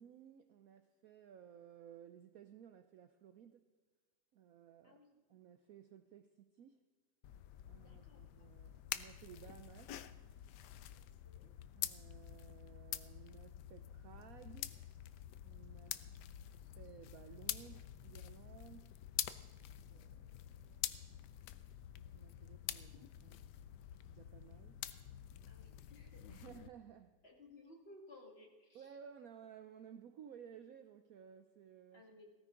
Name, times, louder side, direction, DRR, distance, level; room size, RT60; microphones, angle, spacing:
voice 1, 0.0-3.7 4.3-5.0 5.3-6.8 7.7-10.0 11.7-14.7 15.4-16.0 16.8-18.9 19.9-21.1 22.0-23.4 24.1-24.8 25.6-25.7 26.0-27.2 28.7-32.2, right 8 dB, 65° right, 10 dB, 0.9 m, -57 dB
voice 2, 4.8-5.2 7.8-8.5 10.9-11.5 15.9-16.0 25.5-26.5 27.2-28.9 31.9-32.3, left 2 dB, 35° left, 1 dB, 2.1 m, -60 dB
sound 1, 7.2-26.7, left 12 dB, 70° left, 1.2 m, -47 dB
17.0 x 14.5 x 3.8 m, 1.5 s
omnidirectional pair, 2.0 m